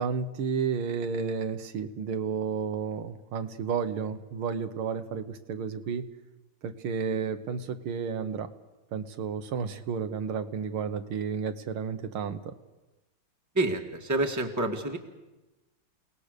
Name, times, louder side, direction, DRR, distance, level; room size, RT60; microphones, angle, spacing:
voice 1, 0.0-6.1 6.6-8.5 8.9-12.5, right 6 dB, 80° right, 8 dB, 2.0 m, -32 dB
voice 2, 13.5-15.0, right 2 dB, 10° right, 3 dB, 1.7 m, -28 dB
29.5 x 19.0 x 6.7 m, 1.1 s
omnidirectional pair, 2.3 m